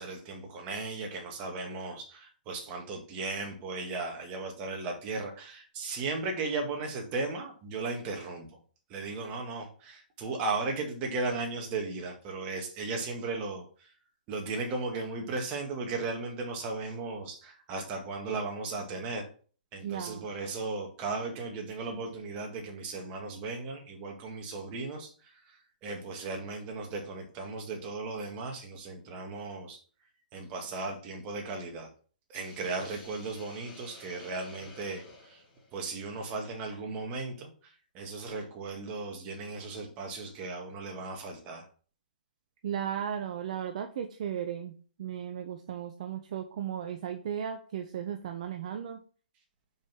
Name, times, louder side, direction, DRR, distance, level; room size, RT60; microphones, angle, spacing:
voice 1, 0.0-8.5 8.9-13.9 14.3-19.3 19.7-29.8 30.3-31.9 32.3-35.4 35.7-41.7, right 3 dB, 30° right, 3 dB, 2.1 m, -36 dB
voice 2, 19.8-20.3 42.6-44.7 45.0-49.0, right 9 dB, 50° right, 6 dB, 0.7 m, -35 dB
Hiss, 32.3-36.6, left 2 dB, 25° left, 3.0 m, -53 dB
5.6 x 5.1 x 5.9 m, 0.41 s
figure-of-eight pair, 120°, 5 cm